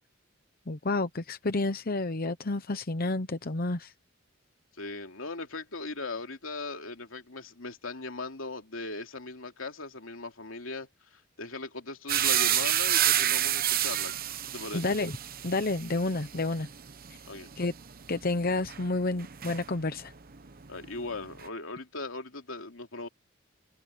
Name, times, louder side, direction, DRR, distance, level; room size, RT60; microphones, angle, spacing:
voice 1, 0.7-3.9 14.7-15.1 15.4-16.7 17.1-17.2 17.6-17.7 18.1-20.1, left 2 dB, 50° left, 0.9 m, -30 dB
voice 2, 4.8-14.1 14.5-14.9 17.3-17.5 20.7-23.1, left 3 dB, 90° left, 2.9 m, -39 dB
sound 1, 12.1-20.1 20.3-21.5, right 11 dB, 45° right, 0.9 m, -29 dB
head